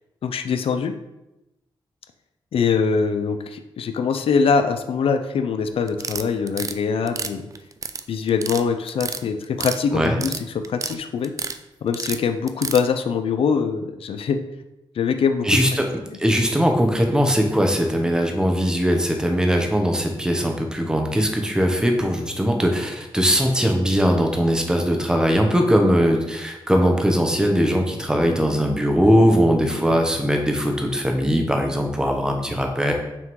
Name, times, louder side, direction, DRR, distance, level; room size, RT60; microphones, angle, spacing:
voice 1, 0.2-0.9 2.5-7.5 8.1-11.3 11.8-14.4 15.0-15.5 29.9-30.0, left 5 dB, 80° left, 8 dB, 0.5 m, -23 dB
sound 1, 5.9-6.7 7.1-8.0 8.3-8.6 8.9-9.8 10.0-11.0 11.2-11.6 11.9-12.8, right 5 dB, 35° right, 0.4 m, -29 dB
voice 2, 15.4-15.8 16.2-32.9, equal, 5° right, 2 dB, 0.9 m, -20 dB
6.0 x 3.7 x 4.6 m, 0.94 s
wide cardioid pair, 125°, 9 cm